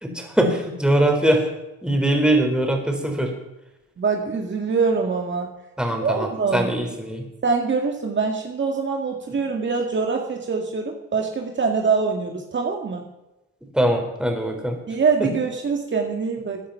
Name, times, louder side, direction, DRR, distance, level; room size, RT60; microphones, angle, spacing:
voice 1, 0.0-1.4 1.8-3.3 5.8-7.2 13.7-14.8, right 1 dB, 5° right, 2 dB, 4.0 m, -21 dB
voice 2, 4.0-5.5 6.0-6.7 7.4-13.1 14.9-16.6, right 5 dB, 40° right, 2 dB, 1.9 m, -24 dB
15.5 x 10.0 x 5.7 m, 0.97 s
cardioid pair, 90°, 30 cm